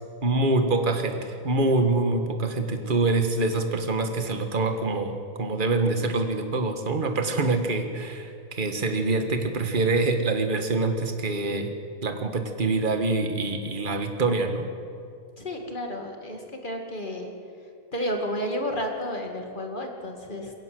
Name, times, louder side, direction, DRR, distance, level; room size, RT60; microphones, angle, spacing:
voice 1, 0.2-11.7 12.0-14.7, right 3 dB, 25° right, 6 dB, 1.6 m, -25 dB
voice 2, 15.4-17.3 17.9-20.5, equal, 25° left, 3 dB, 2.4 m, -31 dB
22.5 x 16.5 x 7.8 m, 2.4 s
omnidirectional pair, 2.2 m